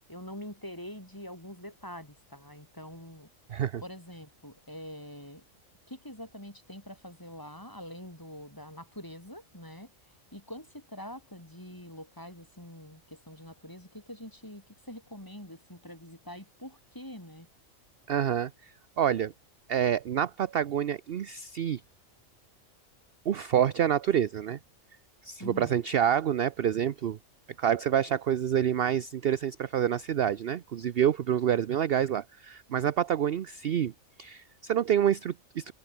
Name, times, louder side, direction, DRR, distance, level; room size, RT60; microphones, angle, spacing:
voice 1, 0.1-3.3 3.8-5.4 5.9-9.9 10.3-17.5 25.4-25.8, left 1 dB, 15° left, 4.9 m, -45 dB
voice 2, 3.5-3.8 18.1-18.7 19.0-19.3 19.7-21.8 23.3-24.6 25.2-27.2 27.6-33.9 34.2-35.7, right 9 dB, 55° right, 0.8 m, -27 dB
omnidirectional pair, 1.4 m